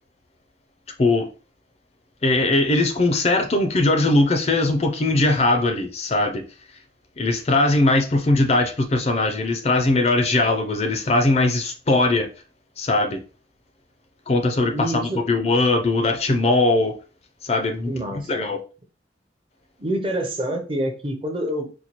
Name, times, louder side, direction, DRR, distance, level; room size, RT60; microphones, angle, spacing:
voice 1, 2.2-6.4 7.2-12.3 12.8-13.2 14.3-17.0 17.4-17.9 18.3-18.6, left 2 dB, 35° left, 0.4 m, -20 dB
voice 2, 14.7-15.2 17.9-18.5 19.8-21.7, right 1 dB, 30° right, 0.6 m, -27 dB
4.2 x 2.2 x 2.9 m
head